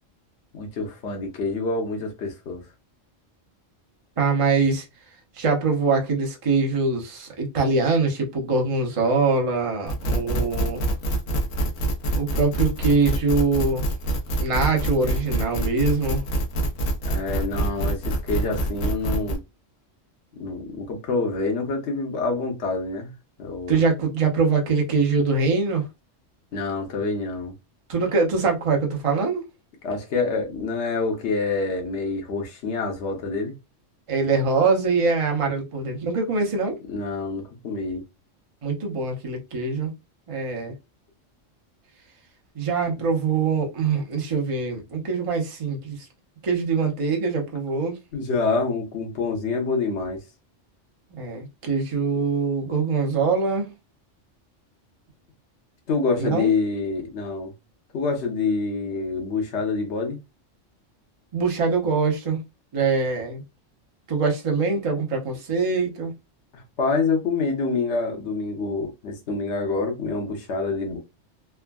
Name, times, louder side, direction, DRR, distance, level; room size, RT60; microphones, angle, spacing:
voice 1, 0.5-2.6 17.0-19.4 20.3-23.1 23.4-23.8 26.5-27.5 29.8-33.5 36.9-38.0 48.1-50.2 55.9-57.5 57.9-60.2 66.5-71.0, left 4 dB, 65° left, 1.1 m, -26 dB
voice 2, 4.2-4.9 5.3-10.9 12.2-13.8 14.4-16.2 23.7-25.9 27.9-29.4 34.1-36.8 38.6-39.9 40.3-40.7 42.5-46.1 46.4-48.0 51.2-53.7 56.2-56.5 61.3-62.4 62.7-63.4 64.1-66.1, right 4 dB, 30° right, 0.7 m, -23 dB
sound 1, 9.9-19.4, right 1 dB, 90° left, 1.1 m, -25 dB
3.4 x 2.1 x 2.2 m
omnidirectional pair, 1.3 m